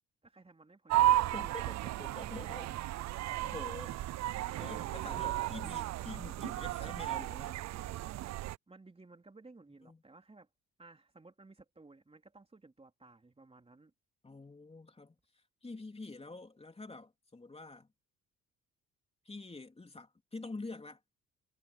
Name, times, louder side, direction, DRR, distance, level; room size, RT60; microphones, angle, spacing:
voice 1, 0.2-2.4 4.4-5.1 8.7-10.5 10.8-13.9, right 3 dB, 20° right, 3.7 m, -57 dB
sound 1, 0.9-8.6, right 14 dB, 65° right, 0.5 m, -34 dB
voice 2, 1.3-2.8 3.4-4.1 4.6-7.6 9.8-10.0 14.2-17.9 19.2-21.0, left 3 dB, 20° left, 3.4 m, -47 dB
cardioid pair, 90°, 30 cm